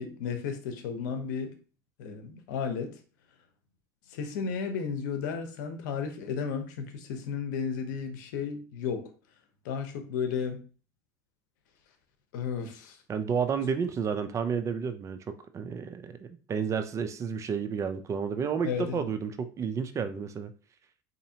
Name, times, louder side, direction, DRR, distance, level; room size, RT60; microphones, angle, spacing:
voice 1, 0.0-1.5 2.0-3.0 4.1-9.1 9.6-10.6 12.3-13.0 18.6-19.1, left 6 dB, 85° left, 6 dB, 0.8 m, -33 dB
voice 2, 13.1-20.5, right 6 dB, 30° right, 10 dB, 0.4 m, -31 dB
4.0 x 2.8 x 2.8 m, 0.37 s
supercardioid pair, 110°, 10 cm